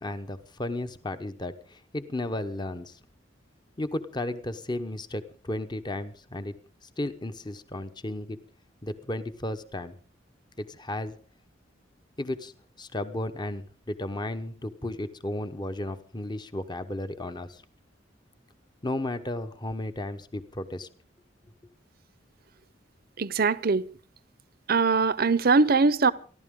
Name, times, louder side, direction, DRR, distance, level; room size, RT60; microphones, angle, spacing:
voice 1, 0.0-3.0 3.8-6.5 6.8-8.4 8.8-10.0 10.6-11.2 12.2-12.5 12.8-17.6 18.8-20.9, left 1 dB, 25° left, 0.9 m, -34 dB
voice 2, 23.2-23.8 24.7-26.1, right 4 dB, 55° right, 0.7 m, -21 dB
28.5 x 12.0 x 3.7 m
head